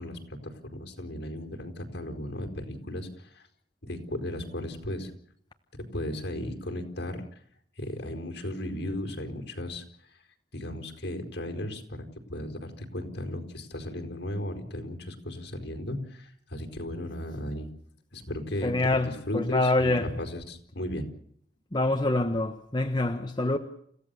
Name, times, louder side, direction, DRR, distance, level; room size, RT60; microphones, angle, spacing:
voice 1, 0.0-3.4 3.8-5.1 5.9-7.2 7.8-9.8 10.5-17.7 18.1-21.1, left 1 dB, 65° left, 4.8 m, -35 dB
voice 2, 18.6-20.1 21.7-23.6, left 2 dB, 25° left, 1.3 m, -26 dB
30.0 x 16.0 x 7.0 m
head